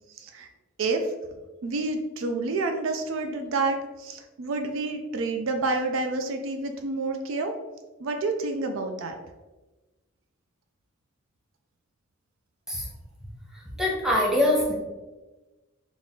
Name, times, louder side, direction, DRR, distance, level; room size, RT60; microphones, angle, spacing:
voice 1, 0.1-0.5 0.8-1.1 1.6-7.6 8.0-9.2, right 3 dB, 65° right, 5 dB, 0.4 m, -29 dB
voice 2, 13.8-14.7, left 1 dB, 5° right, -4 dB, 0.8 m, -23 dB
4.0 x 2.3 x 3.6 m, 1.1 s
head